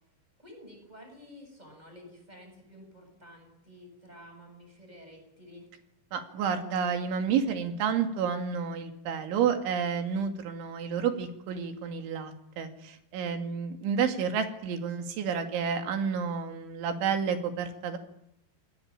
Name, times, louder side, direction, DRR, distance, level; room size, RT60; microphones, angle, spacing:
voice 1, 0.4-5.7, left 1 dB, 10° right, 3 dB, 7.8 m, -51 dB
voice 2, 6.1-18.0, right 7 dB, 75° right, 6 dB, 4.8 m, -30 dB
28.0 x 19.5 x 9.0 m, 0.80 s
omnidirectional pair, 5.5 m